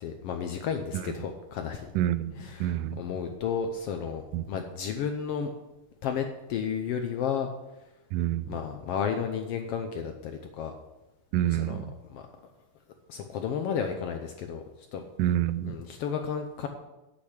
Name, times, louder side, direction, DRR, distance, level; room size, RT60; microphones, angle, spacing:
voice 1, 0.0-1.9 2.4-5.5 6.0-7.5 8.5-10.7 11.5-11.8 12.1-12.3 13.1-14.6 14.9-15.0 15.6-16.7, left 7 dB, 85° left, 5 dB, 1.3 m, -32 dB
voice 2, 2.0-3.0 4.3-4.5 8.1-8.5 11.3-11.9 15.2-15.8, right 12 dB, 90° right, 14 dB, 2.2 m, -27 dB
8.7 x 8.3 x 6.6 m, 1.0 s
omnidirectional pair, 3.6 m